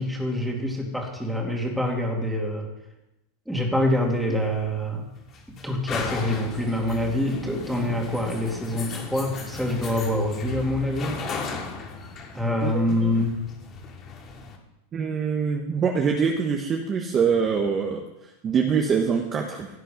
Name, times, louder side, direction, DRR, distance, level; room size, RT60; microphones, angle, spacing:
voice 1, 0.0-2.7 3.5-5.1 5.5-11.2 12.3-13.4, left 1 dB, ahead, -1 dB, 2.6 m, -26 dB
sound 1, 3.9-14.6, left 4 dB, 30° left, 2.2 m, -36 dB
voice 2, 12.6-13.1 14.9-18.0 18.4-19.7, right 6 dB, 20° right, 2 dB, 1.2 m, -24 dB
17.0 x 9.1 x 5.2 m, 0.90 s
supercardioid pair, 155°, 0 cm